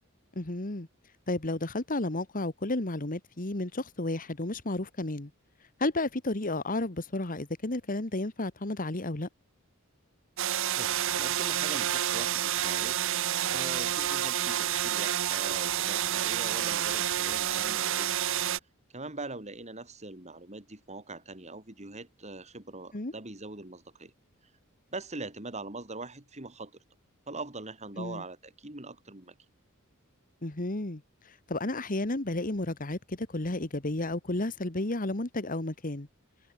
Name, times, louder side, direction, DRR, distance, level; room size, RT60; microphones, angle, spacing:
voice 1, 0.3-0.9 1.3-5.3 5.8-9.3 22.9-23.1 28.0-28.2 30.4-31.0 31.5-36.1, left 2 dB, 40° left, 1.6 m, -32 dB
sound 1, 10.4-18.6, right 11 dB, 65° right, 0.7 m, -29 dB
voice 2, 10.8-13.0 13.5-18.4 18.9-24.1 24.9-26.7 27.3-29.3, right 2 dB, 30° right, 3.6 m, -42 dB
head